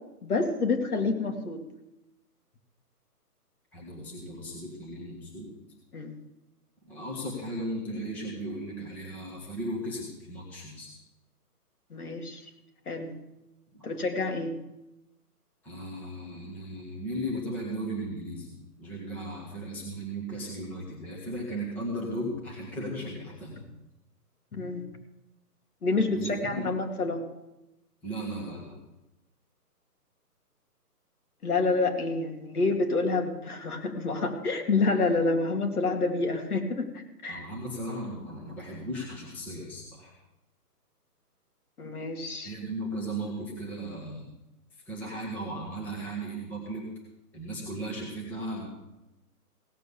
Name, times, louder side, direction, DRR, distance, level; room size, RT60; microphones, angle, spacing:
voice 1, 0.2-1.6 5.9-6.1 11.9-12.4 12.9-13.1 13.8-14.6 24.5-24.8 25.8-27.2 31.4-37.5 41.8-42.5, left 3 dB, 65° left, 4 dB, 2.4 m, -28 dB
voice 2, 3.7-5.5 6.9-10.9 13.7-13.9 15.6-18.5 18.8-23.6 26.1-26.8 28.0-28.7 37.3-40.1 42.4-44.3 44.7-46.8 47.3-48.7, right 1 dB, 5° left, -4 dB, 1.1 m, -36 dB
16.5 x 7.5 x 6.8 m, 0.98 s
hypercardioid pair, 160°, 47 cm